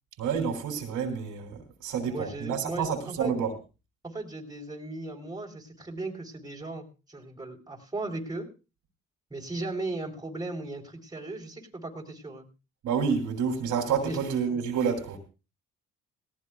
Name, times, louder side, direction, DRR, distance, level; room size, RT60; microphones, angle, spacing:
voice 1, 0.2-3.5 12.8-15.2, right 6 dB, 85° right, 4 dB, 3.2 m, -29 dB
voice 2, 2.1-3.3 4.0-8.5 9.3-12.5 14.0-14.2, right 2 dB, 15° right, 1 dB, 3.8 m, -37 dB
18.0 x 17.5 x 2.4 m, 0.32 s
cardioid pair, 90°, 30 cm